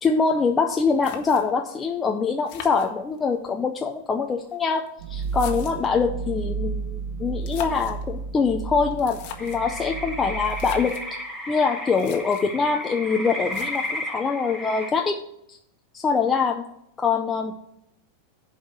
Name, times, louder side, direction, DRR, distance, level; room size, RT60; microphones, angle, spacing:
voice 1, 0.0-11.0 11.5-15.2 15.5-15.6 15.9-16.7 17.0-17.5, left 5 dB, 20° left, 3 dB, 0.5 m, -24 dB
sound 1, 0.6-0.7 1.0-1.7 2.5-3.4 4.3-6.0 7.3-8.0 8.9-9.7 10.4-11.1 11.6-11.7 11.9-12.6 13.5-14.1, left 8 dB, 55° left, 1.3 m, -41 dB
sound 2, 5.0-10.8, right 5 dB, 70° right, 1.0 m, -32 dB
sound 3, 9.4-14.9, left 1 dB, 5° right, 1.7 m, -33 dB
7.8 x 4.9 x 7.2 m, 0.78 s
supercardioid pair, 140°, 0 cm